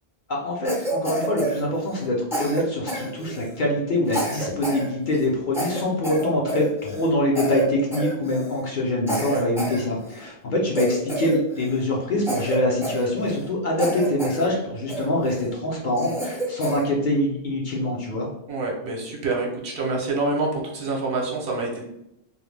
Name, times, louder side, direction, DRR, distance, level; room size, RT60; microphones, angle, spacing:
voice 1, 0.3-18.3, left 1 dB, 55° left, -2 dB, 0.7 m, -24 dB
Cough, 0.6-2.1 2.3-3.6 4.1-4.9 5.1-5.3 5.5-7.1 7.3-7.7 7.9-8.6 9.1-10.3 10.7-11.8 12.2-13.5 13.8-14.5 14.9-15.4 16.0-16.9, right 1 dB, 5° right, 0.3 m, -29 dB
voice 2, 18.5-21.9, right 2 dB, 65° right, 0 dB, 0.8 m, -27 dB
2.3 x 2.1 x 3.1 m, 0.82 s
omnidirectional pair, 1.1 m